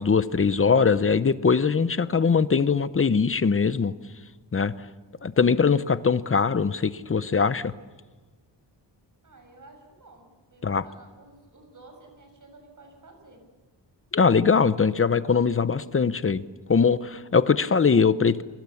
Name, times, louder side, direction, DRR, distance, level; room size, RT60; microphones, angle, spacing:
voice 1, 0.0-3.9 4.5-4.7 5.2-7.7 10.6-10.8 14.1-16.4 16.7-18.4, left 5 dB, 30° left, 14 dB, 0.8 m, -21 dB
voice 2, 9.2-13.4, right 2 dB, 45° right, 5 dB, 6.9 m, -52 dB
29.5 x 23.0 x 7.2 m, 1.3 s
wide cardioid pair, 140°, 44 cm